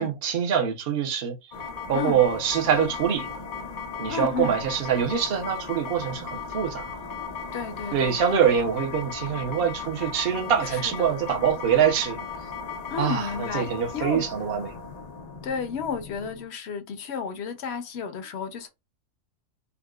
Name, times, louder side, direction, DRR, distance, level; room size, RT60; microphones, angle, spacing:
voice 1, 0.0-1.3 1.9-3.3 4.0-6.9 7.9-12.2 13.0-14.8, right 8 dB, 50° right, 0.8 m, -24 dB
sound 1, 1.5-16.5, left 5 dB, 85° left, 0.3 m, -37 dB
voice 2, 1.9-2.2 4.1-4.6 7.5-8.2 10.6-11.1 12.9-14.2 15.4-18.7, left 6 dB, 60° left, 0.7 m, -32 dB
3.7 x 2.3 x 2.3 m
omnidirectional pair, 1.6 m